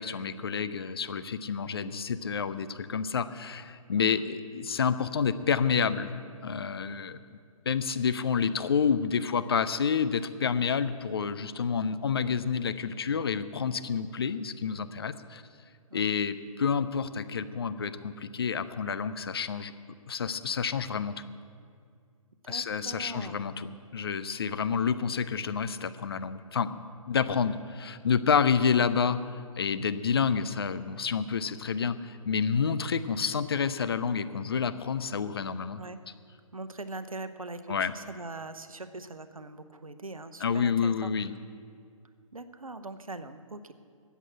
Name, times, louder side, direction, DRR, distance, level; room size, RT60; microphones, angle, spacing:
voice 1, 0.0-7.2 7.7-15.4 15.9-19.7 20.1-21.1 22.5-26.8 27.1-29.2 29.6-35.8 37.7-37.9 40.4-41.3, left 6 dB, 45° left, 12 dB, 0.6 m, -29 dB
voice 2, 3.9-4.3 15.9-16.3 22.4-23.4 35.7-36.0 36.5-41.1 42.3-43.7, right 2 dB, 75° right, 11 dB, 1.0 m, -42 dB
13.5 x 8.3 x 8.8 m, 2.3 s
figure-of-eight pair, 135°, 18 cm